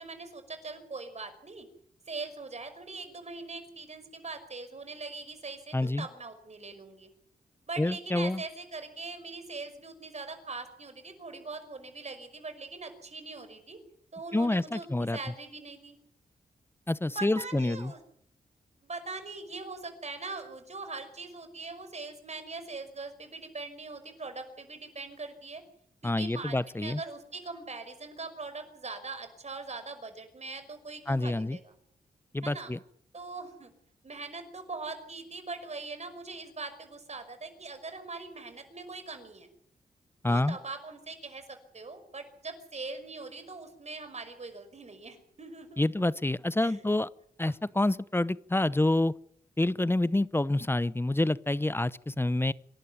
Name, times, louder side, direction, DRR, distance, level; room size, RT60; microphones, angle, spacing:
voice 1, 0.0-1.7 2.1-7.1 7.7-13.8 14.1-14.9 15.1-16.0 17.1-18.0 18.8-25.6 26.0-31.7 32.4-32.7 33.1-33.7 34.0-39.5 40.3-46.0 46.6-46.8 47.5-47.6, right 3 dB, 45° right, 9 dB, 5.6 m, -41 dB
voice 2, 5.7-6.1 7.8-8.4 14.3-15.2 16.9-17.9 26.0-27.0 31.1-31.6 32.3-32.8 40.2-40.6 45.8-47.1 47.4-49.1 49.6-52.5, left 2 dB, 15° left, 19 dB, 0.8 m, -27 dB
26.5 x 12.0 x 9.4 m, 0.68 s
supercardioid pair, 50°, 15 cm